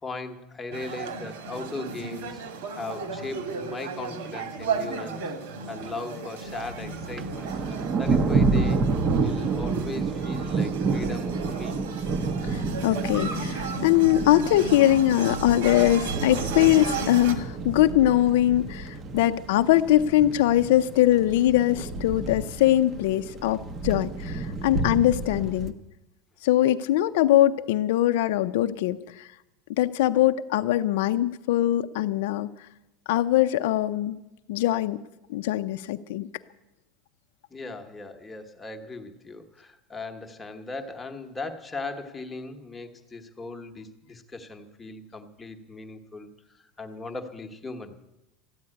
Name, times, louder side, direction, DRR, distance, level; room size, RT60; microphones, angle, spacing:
voice 1, 0.0-2.5 2.7-5.2 5.7-8.9 9.2-11.8 37.5-46.3 46.5-48.0, left 3 dB, 10° left, 4 dB, 1.0 m, -38 dB
sound 1, 0.7-17.3, right 4 dB, 80° right, 2.1 m, -35 dB
Thunder, 6.5-25.7, right 4 dB, 20° right, 0.7 m, -29 dB
voice 2, 12.4-25.7 26.4-29.3 29.8-32.5 33.1-34.2 34.5-35.0 35.3-36.3, left 13 dB, 65° left, 9 dB, 0.5 m, -22 dB
14.0 x 9.4 x 9.7 m, 0.94 s
supercardioid pair, 180°, 0 cm